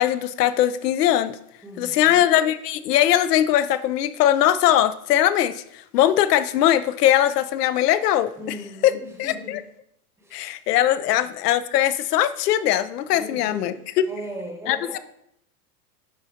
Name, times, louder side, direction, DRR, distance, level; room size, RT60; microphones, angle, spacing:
voice 1, 0.0-1.4 1.8-8.3 8.8-8.9 9.2-9.6 10.3-14.0 14.7-15.0, left 12 dB, 85° left, 13 dB, 0.6 m, -20 dB
voice 2, 1.6-2.2 8.4-9.6 10.2-10.5 11.0-11.2 13.1-15.0, equal, 5° right, 1 dB, 0.8 m, -38 dB
10.5 x 3.7 x 2.8 m, 0.74 s
supercardioid pair, 135°, 46 cm